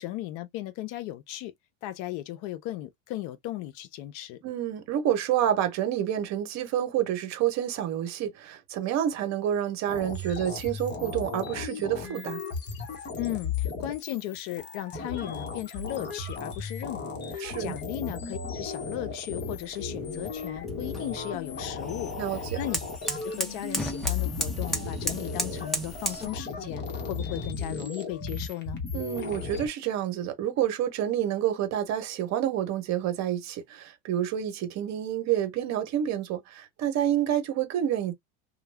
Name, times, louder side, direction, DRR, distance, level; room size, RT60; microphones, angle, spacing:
voice 1, 0.0-1.5 1.8-4.4 13.2-22.1 22.6-22.8 23.2-28.8, left 14 dB, 60° left, 0.6 m, -36 dB
voice 2, 4.4-12.4 17.4-17.8 22.2-22.4 28.9-38.1, right 11 dB, 50° right, 1.0 m, -28 dB
sound 1, 9.9-29.7, left 4 dB, 30° left, 1.1 m, -35 dB
sound 2, 19.5-26.3, right 1 dB, ahead, 0.8 m, -36 dB
2.2 x 2.2 x 3.3 m
supercardioid pair, 130°, 35 cm